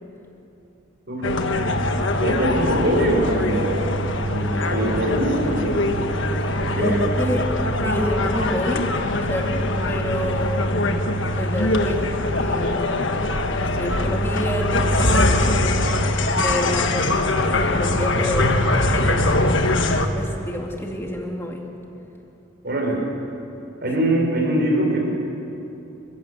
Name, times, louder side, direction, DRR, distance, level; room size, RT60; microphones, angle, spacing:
voice 1, 1.1-1.4 2.2-4.0 4.3-5.8 6.6-7.0 22.6-23.0 23.8-25.0, right 1 dB, 50° right, 0 dB, 5.5 m, -23 dB
sound 1, 1.2-20.1, left 1 dB, 65° left, 1.4 m, -22 dB
voice 2, 6.8-7.5 7.8-8.9 9.3-10.8 11.4-12.9 13.6-16.1 16.3-21.6, equal, 10° left, 1 dB, 2.4 m, -29 dB
27.5 x 15.5 x 8.0 m, 2.9 s
head